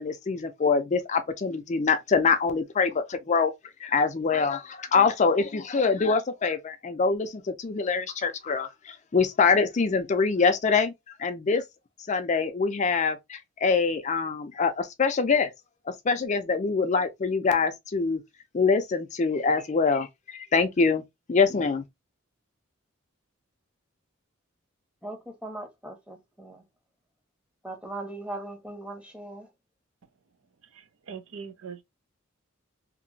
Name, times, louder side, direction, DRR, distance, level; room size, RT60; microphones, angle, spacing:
voice 1, 0.0-3.5 3.8-10.9 11.2-11.6 12.1-15.5 15.9-18.2 18.5-21.0 21.3-21.8, left 5 dB, 35° left, 0.4 m, -24 dB
voice 2, 25.0-26.6 27.6-29.5, right 2 dB, 5° right, 0.8 m, -39 dB
voice 3, 30.6-31.8, right 6 dB, 75° right, 0.5 m, -42 dB
2.9 x 2.6 x 2.6 m
head